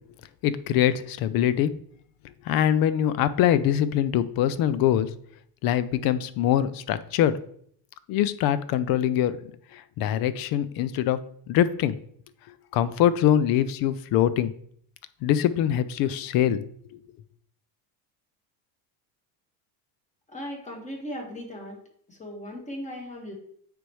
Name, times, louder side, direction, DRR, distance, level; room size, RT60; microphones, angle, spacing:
voice 1, 0.4-1.7 2.5-5.1 5.6-7.4 8.1-12.0 12.7-14.5 15.2-16.6, left 10 dB, 50° left, 15 dB, 0.5 m, -23 dB
voice 2, 20.3-21.8 22.1-23.3, equal, 15° left, 0 dB, 1.6 m, -37 dB
9.0 x 3.4 x 3.1 m, 0.64 s
supercardioid pair, 105°, 47 cm